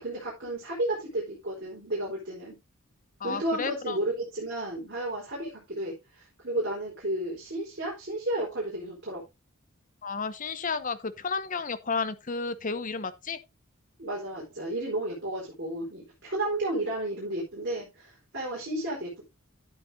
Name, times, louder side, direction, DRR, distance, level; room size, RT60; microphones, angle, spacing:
voice 1, 0.0-2.5 3.2-9.2 14.0-19.2, right 1 dB, 55° right, 4.2 m, -32 dB
voice 2, 3.2-4.0 10.0-13.4, left 4 dB, 40° left, 0.8 m, -32 dB
12.0 x 8.9 x 2.7 m
head